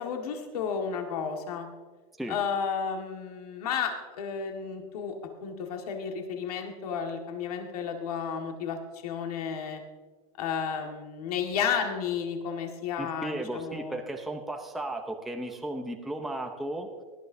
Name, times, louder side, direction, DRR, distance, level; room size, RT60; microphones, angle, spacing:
voice 1, 0.0-1.7 2.3-5.1 5.4-9.8 10.4-14.0, left 7 dB, 75° left, 3 dB, 1.8 m, -32 dB
voice 2, 13.0-16.9, right 1 dB, ahead, 3 dB, 0.7 m, -35 dB
18.5 x 11.5 x 2.7 m, 1.4 s
supercardioid pair, 155°, 19 cm